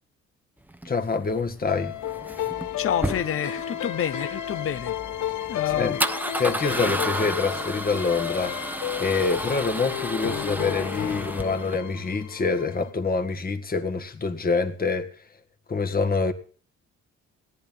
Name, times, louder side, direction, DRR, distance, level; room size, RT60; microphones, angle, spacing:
Male speech man speaking / Car / Engine starting, 0.7-11.8, right 1 dB, 5° right, 1.0 m, -33 dB
voice 1, 0.9-1.9 5.7-5.9 6.4-8.6 9.0-15.1 15.7-16.3, left 4 dB, 30° left, 1.9 m, -26 dB
sound 1, 1.7-12.9, left 11 dB, 75° left, 1.1 m, -32 dB
voice 2, 2.8-4.9 5.5-6.0, left 9 dB, 45° left, 0.9 m, -28 dB
17.5 x 10.5 x 3.6 m
cardioid pair, 90°, 30 cm